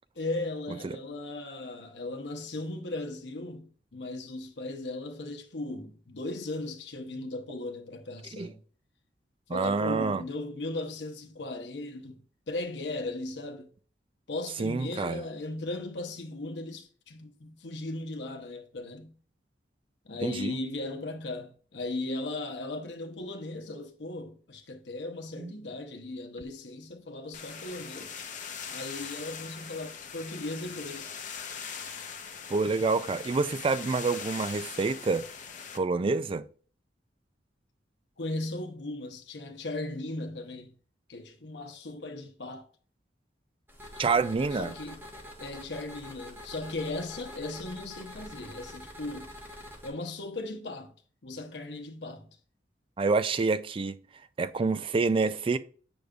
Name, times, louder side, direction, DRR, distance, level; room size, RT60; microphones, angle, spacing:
voice 1, 0.2-8.6 9.5-13.7 14.3-19.1 20.0-28.2 28.7-31.2 38.2-40.7 41.1-42.7 44.5-45.0 45.4-49.3 49.8-50.9 51.2-52.4, left 2 dB, 75° left, 0.8 m, -37 dB
voice 2, 9.5-10.2 14.6-15.2 20.2-20.6 25.4-25.5 32.5-35.2 35.7-36.5 44.0-44.7 53.0-54.0 54.4-55.6, right 4 dB, 30° right, 0.3 m, -27 dB
sound 1, 27.3-35.8, left 6 dB, 45° left, 0.7 m, -41 dB
sound 2, 43.7-49.9, left 1 dB, 15° right, 1.2 m, -46 dB
7.9 x 5.1 x 2.4 m
head